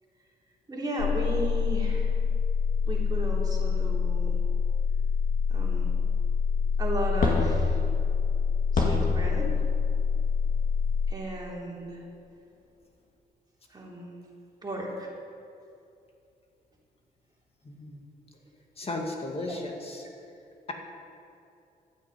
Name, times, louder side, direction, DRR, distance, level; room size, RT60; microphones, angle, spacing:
voice 1, 0.7-2.1 2.8-4.3 5.5-5.9 6.8-7.8 8.7-9.5 11.1-12.0 13.7-14.1 14.6-15.1 19.5-19.6, right 1 dB, 25° right, -3 dB, 3.2 m, -34 dB
sound 1, 1.0-11.1, left 6 dB, 75° left, 0.5 m, -26 dB
sound 2, 7.2-11.2 11.7-11.8 12.6-12.7, left 2 dB, 60° left, 2.4 m, -31 dB
voice 2, 17.6-18.0 18.8-20.1, left 2 dB, 35° left, 1 dB, 2.2 m, -35 dB
12.5 x 9.1 x 7.9 m, 2.6 s
cardioid pair, 100°, 16 cm